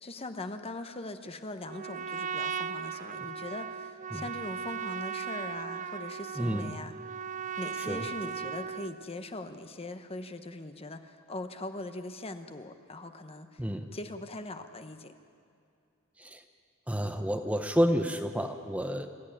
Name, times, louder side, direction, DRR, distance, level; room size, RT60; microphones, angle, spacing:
voice 1, 0.0-7.0 7.6-13.7 13.9-15.1, left 2 dB, 30° left, 8 dB, 1.0 m, -41 dB
Trumpet, 1.6-9.0, right 7 dB, 35° right, 0.6 m, -37 dB
voice 2, 6.4-6.7 7.9-8.0 13.6-13.9 16.2-16.4 16.9-19.1, equal, 5° right, 6 dB, 0.8 m, -29 dB
26.5 x 14.0 x 9.9 m, 2.4 s
head